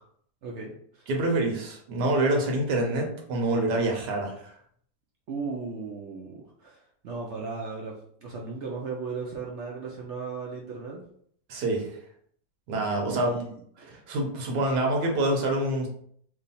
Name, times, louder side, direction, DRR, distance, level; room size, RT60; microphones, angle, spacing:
voice 1, 0.4-1.1 5.3-11.0 13.1-13.6 13.8-14.0, right 4 dB, 70° right, -2 dB, 0.7 m, -36 dB
voice 2, 1.1-4.5 11.5-12.0 12.7-13.4 14.1-15.9, right 2 dB, 90° right, 1 dB, 1.4 m, -26 dB
3.1 x 2.2 x 4.0 m, 0.63 s
omnidirectional pair, 1.7 m